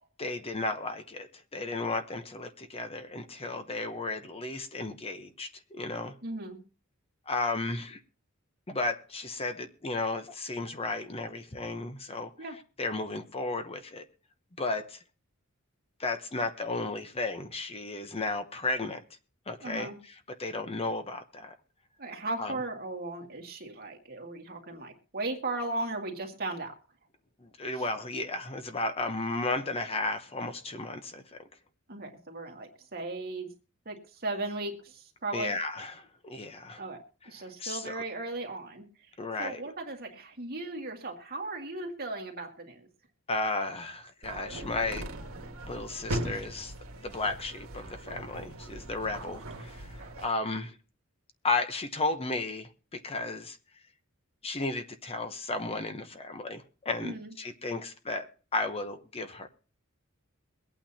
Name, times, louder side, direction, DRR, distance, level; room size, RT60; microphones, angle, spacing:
voice 1, 0.2-6.1 7.3-8.0 8.7-12.3 12.8-14.0 14.6-15.0 16.0-19.0 19.5-19.9 20.4-21.5 22.4-22.5 27.4-31.2 35.3-36.8 37.6-37.9 39.2-39.6 43.3-45.1 45.7-46.7 47.0-50.7 51.4-53.6 54.4-59.5, left 3 dB, 25° left, 8 dB, 0.9 m, -34 dB
voice 2, 6.2-6.6 12.4-12.6 19.6-20.0 22.0-26.7 27.7-27.8 31.9-33.5 33.9-35.6 36.8-38.9 39.4-42.9 46.3-46.4 57.0-57.3, right 2 dB, 45° right, 2 dB, 2.1 m, -37 dB
sound 1, 44.2-50.3, right 1 dB, 70° right, 1.7 m, -39 dB
23.0 x 8.9 x 2.8 m, 0.38 s
head